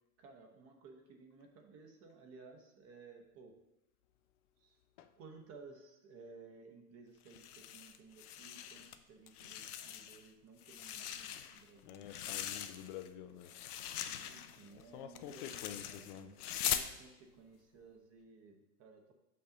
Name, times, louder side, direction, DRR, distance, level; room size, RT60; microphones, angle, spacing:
voice 1, 0.2-3.5 4.6-4.8 5.2-12.4 14.1-19.1, right 4 dB, 30° right, 3 dB, 0.9 m, -57 dB
sound 1, 7.3-9.0 9.3-10.3 10.6-13.1 13.4-16.9, left 10 dB, 75° left, 0.7 m, -42 dB
voice 2, 11.8-13.5 14.7-16.3, left 9 dB, 35° left, 10 dB, 0.4 m, -48 dB
6.6 x 5.5 x 3.8 m, 0.93 s
hypercardioid pair, 115°, 46 cm